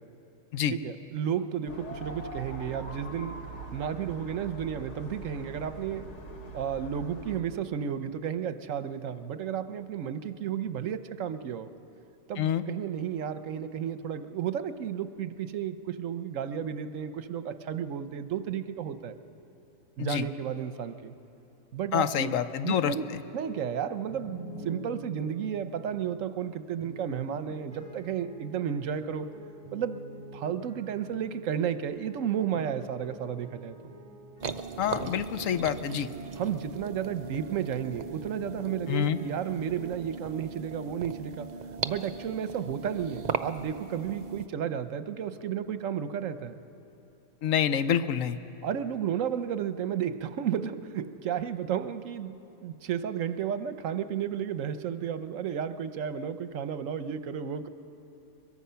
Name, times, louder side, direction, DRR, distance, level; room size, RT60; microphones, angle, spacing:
voice 1, 0.7-6.1 6.5-11.7 12.3-19.1 20.0-21.1 21.7-22.3 22.6-29.3 29.7-30.0 30.3-33.8 36.4-41.5 41.8-46.6 48.6-57.7, right 8 dB, 80° right, 11 dB, 1.2 m, -33 dB
sound 1, 1.7-7.4, right 1 dB, 60° left, 1.6 m, -42 dB
voice 2, 21.9-22.9 34.8-36.1 38.9-39.2 47.4-48.4, left 9 dB, 80° left, 12 dB, 1.1 m, -27 dB
sound 2, 23.2-39.9, equal, 30° right, 6.1 m, -47 dB
sound 3, 34.4-44.5, right 5 dB, 50° right, 0.5 m, -38 dB
22.5 x 22.0 x 5.7 m, 2.8 s
omnidirectional pair, 1.3 m